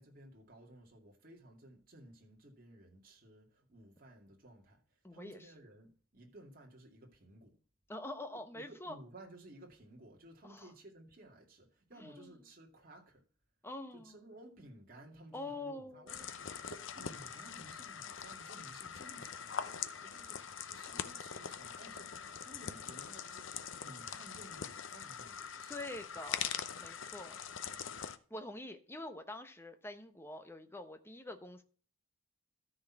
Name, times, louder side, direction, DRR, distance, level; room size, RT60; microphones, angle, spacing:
voice 1, 0.0-7.5 8.5-13.2 13.9-25.8, right 1 dB, 45° right, 2.4 m, -56 dB
voice 2, 5.0-5.5 7.9-9.0 10.4-10.7 12.0-12.3 13.6-14.1 15.3-16.3 25.7-26.5 26.8-27.4 28.3-31.6, left 2 dB, 10° left, 0.9 m, -45 dB
sound 1, 16.1-28.2, left 7 dB, 65° left, 0.7 m, -43 dB
13.5 x 4.5 x 5.8 m
head